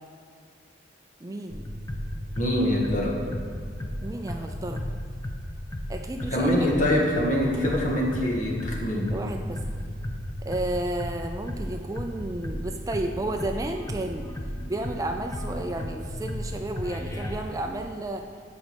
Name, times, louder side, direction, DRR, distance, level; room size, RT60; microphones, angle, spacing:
voice 1, 1.2-1.7 4.0-4.8 5.9-6.7 9.1-9.6 10.4-14.3 14.7-18.2, right 1 dB, 20° right, 4 dB, 0.4 m, -32 dB
sound 1, 1.5-17.4, left 1 dB, 15° left, 0.7 m, -35 dB
voice 2, 2.4-3.2 6.3-9.1, left 1 dB, 45° left, -2 dB, 1.7 m, -24 dB
9.2 x 5.2 x 6.6 m, 2.3 s
head